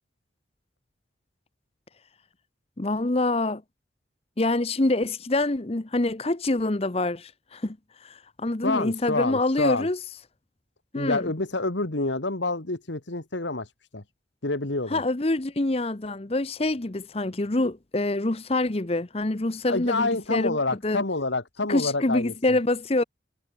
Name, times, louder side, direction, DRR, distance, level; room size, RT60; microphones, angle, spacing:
voice 1, 2.8-3.6 4.4-7.8 8.0-10.0 10.9-11.3 14.9-21.0 21.7-23.0, left 2 dB, 30° left, 0.9 m, -26 dB
voice 2, 8.6-9.9 11.0-14.0 14.4-15.0 19.7-22.3, left 2 dB, 75° left, 2.1 m, -27 dB
head